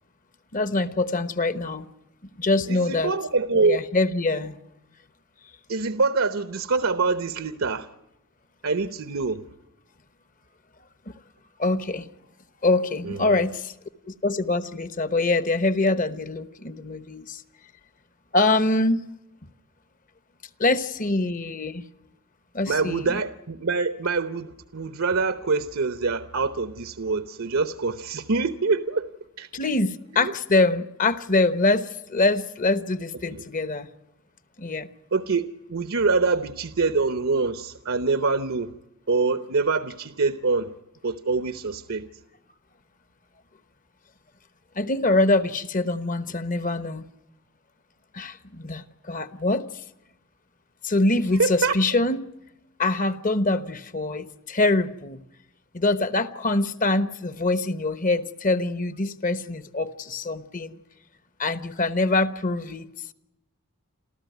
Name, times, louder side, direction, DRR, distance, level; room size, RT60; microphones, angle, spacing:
voice 1, 0.5-1.9 2.4-3.1 3.6-4.6 11.1-11.2 11.6-12.1 12.6-13.7 14.1-17.4 18.3-19.0 20.6-21.8 22.5-23.2 29.5-33.9 34.6-34.9 44.7-47.0 48.1-49.6 50.8-52.2 52.8-55.2 55.7-60.8 61.4-62.9, left 2 dB, 35° left, 1.0 m, -24 dB
voice 2, 2.7-3.8 5.7-7.9 8.6-9.4 13.0-13.4 22.7-29.1 29.4-29.5 30.1-30.3 33.3-33.4 35.1-38.7 39.1-40.7 41.0-42.1 51.4-51.8, right 4 dB, 65° right, 0.9 m, -25 dB
29.0 x 14.0 x 9.3 m
head